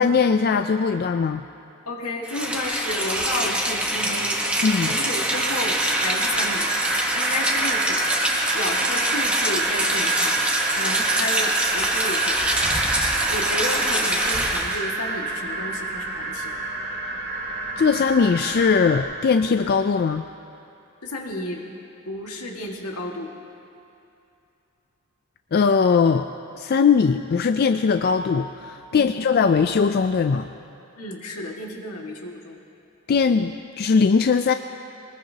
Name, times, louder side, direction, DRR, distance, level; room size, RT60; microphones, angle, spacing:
voice 1, 0.0-1.4 4.6-4.9 17.8-20.3 25.5-26.3 26.5-30.5 33.1-34.5, left 5 dB, 45° left, 9 dB, 0.3 m, -20 dB
voice 2, 1.9-4.4 4.8-6.7 7.1-8.0 8.5-10.4 10.7-12.4 13.3-16.5 21.0-21.7 22.1-23.3 28.9-29.2 31.0-32.6, left 2 dB, 80° left, 0 dB, 1.9 m, -32 dB
Rain, 2.2-14.8, right 1 dB, 5° right, 1.1 m, -24 dB
sound 1, 5.3-19.0, right 3 dB, 55° right, 2.7 m, -28 dB
22.5 x 20.0 x 2.8 m, 2.7 s
head